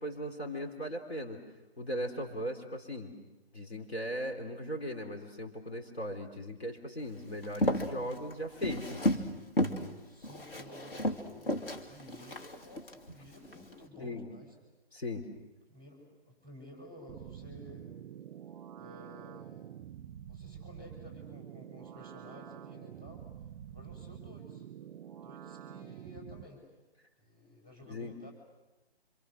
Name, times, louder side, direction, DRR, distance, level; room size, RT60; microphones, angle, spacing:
voice 1, 0.0-1.4 1.8-3.1 3.5-9.2 14.0-14.3 14.9-15.3 27.9-28.1, equal, 75° left, 3 dB, 3.8 m, -38 dB
Walk footsteps, 7.4-9.3 9.6-9.9 10.2-12.9 13.4-13.7, equal, 60° left, 2.6 m, -32 dB
voice 2, 10.0-14.6 15.7-17.9 18.8-19.7 20.3-23.2 23.7-24.6 25.1-26.6 27.2-28.3, left 1 dB, 15° left, 1 dB, 6.4 m, -53 dB
sound 1, 17.1-26.5, right 10 dB, 15° right, 1.2 m, -47 dB
27.5 x 26.5 x 6.5 m, 1.0 s
figure-of-eight pair, 140°, 32 cm